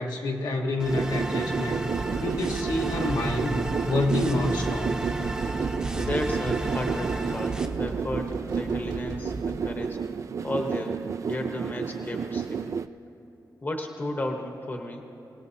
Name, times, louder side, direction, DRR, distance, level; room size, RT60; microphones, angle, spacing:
voice 1, 0.0-1.9 2.2-5.0, left 2 dB, 75° left, 1 dB, 1.5 m, -28 dB
sound 1, 0.8-7.7, right 1 dB, 10° right, 0.8 m, -34 dB
sound 2, 0.9-12.9, right 6 dB, 45° right, 0.3 m, -31 dB
sound 3, 1.9-9.7, right 3 dB, 75° right, 1.8 m, -37 dB
voice 2, 5.6-10.0 10.4-12.8 13.6-15.1, left 1 dB, 30° left, 2 dB, 1.0 m, -34 dB
26.5 x 18.0 x 2.8 m, 2.9 s
wide cardioid pair, 175°, 7 cm